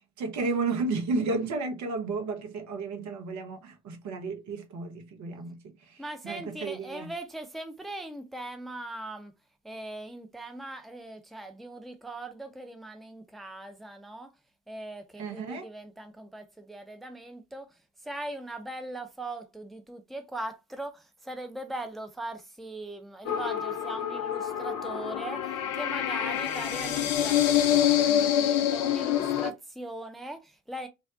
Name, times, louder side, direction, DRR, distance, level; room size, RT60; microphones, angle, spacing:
voice 1, 0.2-7.1 15.2-15.7, right 3 dB, 50° right, 0.8 m, -33 dB
voice 2, 6.0-9.3 9.6-14.3 14.7-17.8 18.0-30.9, right 1 dB, ahead, 0.6 m, -40 dB
sound 1, 23.3-29.5, left 10 dB, 60° left, 0.5 m, -26 dB
2.5 x 2.1 x 3.6 m
figure-of-eight pair, 50°, 36 cm